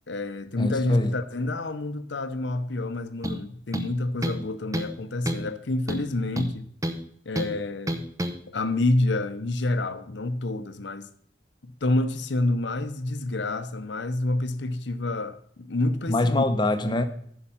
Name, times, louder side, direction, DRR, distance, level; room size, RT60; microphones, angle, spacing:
voice 1, 0.1-6.6 7.3-8.1 8.5-11.1 11.8-16.4, left 2 dB, 70° left, 0.8 m, -28 dB
voice 2, 0.6-1.1 16.1-17.1, left 2 dB, 25° left, 0.8 m, -24 dB
sound 1, 3.2-3.4 3.7-4.5 4.7-5.0 5.3-5.5 5.9-7.0 7.4-7.5 7.9-8.4, equal, 20° right, 0.8 m, -30 dB
9.9 x 5.6 x 7.1 m
head